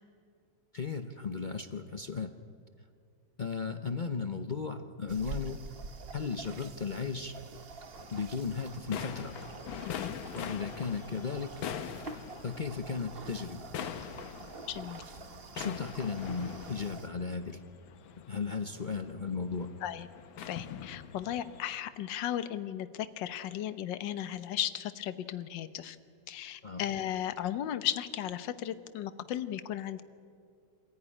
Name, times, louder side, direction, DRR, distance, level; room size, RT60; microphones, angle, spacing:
voice 1, 0.7-2.3 3.4-5.6 6.1-7.3 8.1-9.3 10.3-11.5 12.4-13.7 15.5-17.6 18.3-19.7 26.6-26.8, left 5 dB, 50° left, 7 dB, 0.5 m, -35 dB
sound 1, 5.1-17.1, right 4 dB, 40° right, 1.0 m, -47 dB
sound 2, 7.9-21.6, left 8 dB, 85° left, 1.8 m, -44 dB
voice 2, 9.8-10.2 14.7-15.0 19.8-20.1 20.5-26.0 26.3-30.0, left 11 dB, 70° left, 12 dB, 1.6 m, -35 dB
26.0 x 15.5 x 9.9 m, 2.3 s
omnidirectional pair, 2.1 m